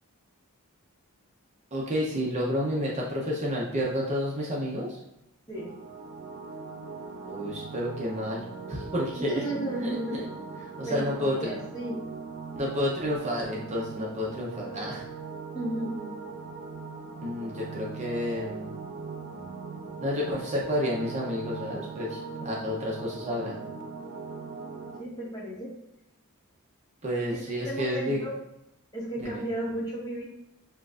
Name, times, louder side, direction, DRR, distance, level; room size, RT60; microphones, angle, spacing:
voice 1, 1.7-5.0 7.3-9.4 9.8-10.2 10.8-11.5 12.6-15.1 17.2-18.6 20.0-23.6 27.0-28.3 29.2-29.4, left 1 dB, 30° right, -3 dB, 0.7 m, -30 dB
sound 1, 5.5-25.0, right 4 dB, 70° right, 0.7 m, -40 dB
voice 2, 9.2-10.2 10.9-12.0 15.5-16.1 25.0-25.7 27.3-28.3 28.9-30.3, right 1 dB, 20° left, -5 dB, 1.2 m, -34 dB
6.8 x 2.5 x 2.4 m, 0.85 s
head